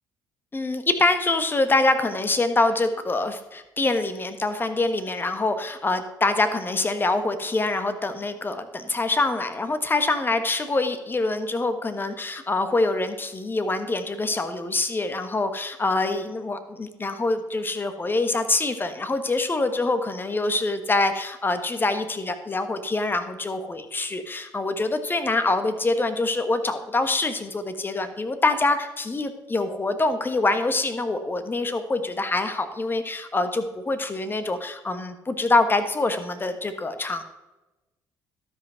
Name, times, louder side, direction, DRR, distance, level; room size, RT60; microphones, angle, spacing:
voice 1, 0.5-37.3, left 2 dB, 25° left, 9 dB, 1.4 m, -25 dB
12.5 x 5.5 x 5.7 m, 1.0 s
supercardioid pair, 65°, 8 cm